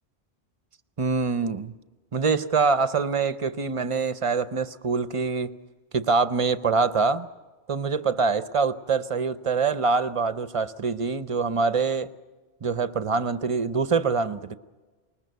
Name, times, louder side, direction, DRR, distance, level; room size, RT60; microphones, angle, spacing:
voice 1, 1.0-1.7 2.1-5.5 5.9-7.3 7.7-12.1 12.6-14.6, right 4 dB, 35° right, 0.6 m, -24 dB
20.5 x 20.0 x 6.8 m
omnidirectional pair, 1.1 m